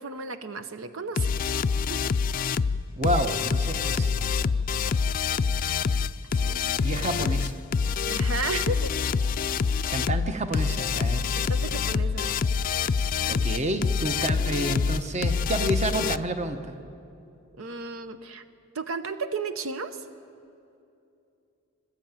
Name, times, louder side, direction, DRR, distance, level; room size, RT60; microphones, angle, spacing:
voice 1, 0.0-1.3 1.9-2.0 6.4-6.7 8.1-8.9 11.3-12.4 17.6-18.4 18.7-20.0, right 4 dB, 80° right, 11 dB, 0.8 m, -34 dB
sound 1, 1.2-16.2, left 5 dB, 45° left, 0.4 m, -26 dB
voice 2, 3.0-4.3 6.8-7.6 9.9-11.3 13.3-16.8, right 1 dB, 35° right, 8 dB, 1.0 m, -29 dB
22.5 x 13.0 x 8.9 m, 2.7 s
head